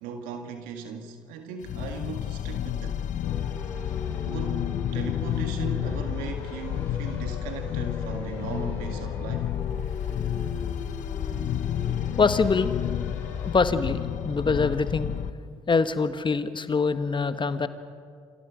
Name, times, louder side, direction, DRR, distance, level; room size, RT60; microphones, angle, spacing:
voice 1, 0.0-3.1 4.3-9.5, right 6 dB, 75° right, 6 dB, 1.8 m, -38 dB
sound 1, 1.6-15.3, left 10 dB, 60° left, 1.0 m, -30 dB
sound 2, 3.2-13.6, left 2 dB, 85° left, 4.2 m, -41 dB
voice 2, 12.2-12.7 13.4-14.0 14.2-15.1 15.7-17.7, left 4 dB, 35° left, 11 dB, 1.5 m, -24 dB
28.5 x 26.0 x 5.1 m, 2.2 s
hypercardioid pair, 45°, 15 cm